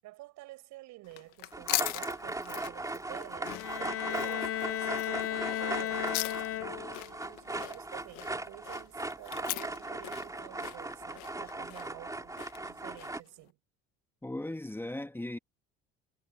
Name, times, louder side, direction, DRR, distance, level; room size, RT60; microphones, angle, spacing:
voice 1, 0.0-6.3 6.6-12.4 12.6-13.6, right 18 dB, 70° right, 7.6 m, -50 dB
sound 1, 1.0-13.3, left 21 dB, 85° left, 1.9 m, -40 dB
sound 2, 1.5-13.2, right 2 dB, 10° right, 3.0 m, -38 dB
Bowed string instrument, 3.4-7.1, left 12 dB, 50° left, 0.9 m, -35 dB
voice 2, 14.2-15.4, left 1 dB, 10° left, 2.1 m, -37 dB
supercardioid pair, 100°, 29 cm